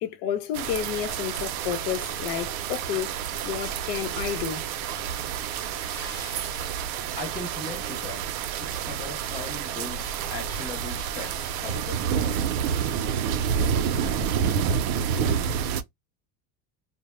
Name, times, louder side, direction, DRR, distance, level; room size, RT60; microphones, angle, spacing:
voice 1, 0.0-3.2 3.4-4.7, left 10 dB, 75° left, 0.7 m, -31 dB
sound 1, 0.5-15.8, right 7 dB, 90° right, 0.6 m, -29 dB
Splash splatter, 5.5-7.8 8.1-8.3 8.8-8.9 10.3-10.4 10.7-10.8 11.4-11.7, left 4 dB, 25° left, 1.0 m, -47 dB
voice 2, 7.2-8.2 8.6-12.4, left 2 dB, 10° left, 0.3 m, -38 dB
2.1 x 2.0 x 3.0 m
cardioid pair, 160°, 50 cm